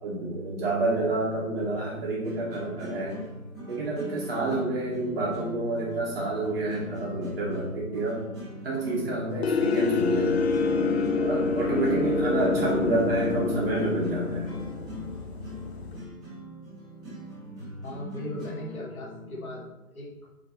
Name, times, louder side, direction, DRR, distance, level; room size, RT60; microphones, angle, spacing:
voice 1, 0.0-3.2 3.7-8.2 8.6-10.4 11.2-14.5, right 2 dB, 45° right, -5 dB, 2.7 m, -28 dB
sound 1, 2.2-19.7, equal, 10° right, 1.9 m, -41 dB
sound 2, 9.4-16.0, left 4 dB, 45° left, 0.9 m, -27 dB
voice 2, 17.8-20.1, left 1 dB, 75° left, -5 dB, 2.7 m, -38 dB
8.8 x 4.1 x 4.0 m, 0.96 s
figure-of-eight pair, 155°, 42 cm